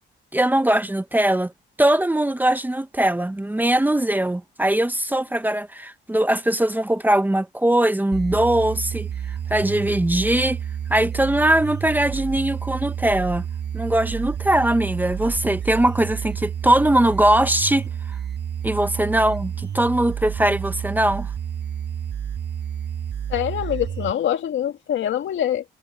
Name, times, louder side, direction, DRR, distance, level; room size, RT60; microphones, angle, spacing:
voice 1, 0.3-1.5 1.8-9.1 9.5-10.6 10.9-13.4 13.7-17.8 18.6-21.3, right 1 dB, 10° right, 1.1 m, -21 dB
sound 1, 8.1-24.1, right 9 dB, 60° right, 5.2 m, -30 dB
voice 2, 23.3-25.6, left 10 dB, 70° left, 2.6 m, -24 dB
cardioid pair, 90°, 20 cm